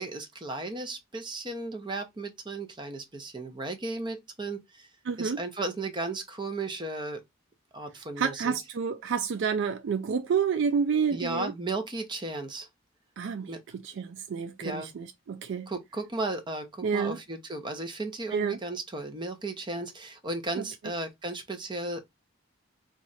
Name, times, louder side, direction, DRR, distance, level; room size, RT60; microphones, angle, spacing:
voice 1, 0.0-4.9 5.2-7.2 7.7-8.6 11.1-12.7 13.5-13.6 14.6-14.9 15.7-22.0, right 2 dB, 25° right, 0.8 m, -35 dB
voice 2, 5.1-5.4 8.2-11.5 13.2-15.7 16.8-17.2 18.3-18.6 20.6-20.7, right 6 dB, 60° right, 0.3 m, -29 dB
3.1 x 2.5 x 4.0 m
head